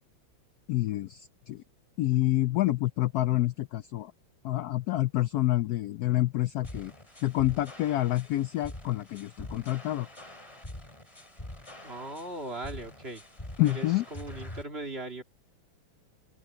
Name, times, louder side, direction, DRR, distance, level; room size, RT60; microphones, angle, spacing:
voice 1, 0.7-1.6 2.0-4.1 4.4-6.9 7.2-10.1 13.6-14.0, left 16 dB, 80° left, 0.8 m, -28 dB
sound 1, 6.6-14.6, left 1 dB, 15° left, 3.4 m, -45 dB
voice 2, 11.8-13.2 13.6-15.2, right 2 dB, 30° right, 2.5 m, -39 dB
omnidirectional pair, 2.2 m